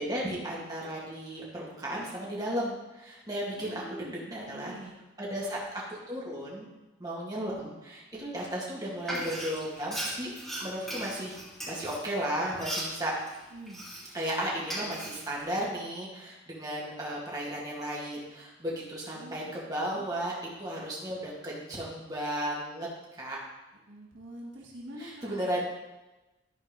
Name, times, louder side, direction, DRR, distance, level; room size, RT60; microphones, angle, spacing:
voice 1, 0.0-4.7 5.2-6.7 7.0-10.3 10.6-11.4 11.7-13.1 14.1-22.9 23.2-23.4 25.0-25.7, right 1 dB, 20° right, -5 dB, 2.1 m, -34 dB
voice 2, 3.6-5.0 13.5-13.8 19.1-20.0 23.9-25.3, right 1 dB, 65° right, -2 dB, 1.7 m, -46 dB
Frying (food), 9.0-14.3 14.6-15.5, right 1 dB, ahead, 3.1 m, -38 dB
12.0 x 4.6 x 5.3 m, 1.1 s
head